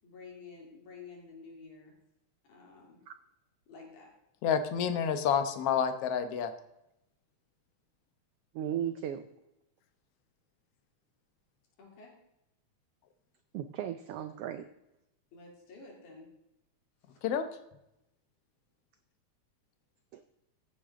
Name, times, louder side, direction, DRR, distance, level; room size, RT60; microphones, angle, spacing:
voice 1, 0.0-1.9 2.5-3.0 3.7-4.1 11.8-12.1 15.3-16.3 17.1-17.2, left 4 dB, 80° left, -1 dB, 4.5 m, -50 dB
voice 2, 4.4-6.5 17.2-17.5, left 7 dB, 65° left, 9 dB, 1.7 m, -29 dB
voice 3, 8.5-9.3 13.5-14.7 20.1-20.2, right 10 dB, 90° right, 10 dB, 1.3 m, -36 dB
15.0 x 8.7 x 3.7 m, 0.86 s
omnidirectional pair, 3.4 m